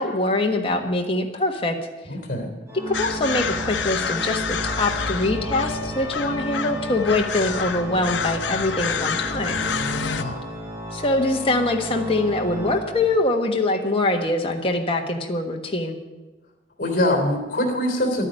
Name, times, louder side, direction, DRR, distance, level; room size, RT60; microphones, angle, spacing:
voice 1, 0.0-1.8 2.9-9.6 9.9-10.0 10.9-16.0, left 2 dB, 30° left, 2 dB, 1.4 m, -23 dB
voice 2, 2.1-2.5 10.2-10.4 16.8-18.3, left 1 dB, 50° left, 4 dB, 3.2 m, -23 dB
Organ, 2.7-13.5, right 1 dB, 20° right, 4.6 m, -34 dB
sound 1, 2.9-10.2, left 6 dB, 85° left, 0.8 m, -28 dB
12.0 x 9.8 x 8.9 m, 1.1 s
head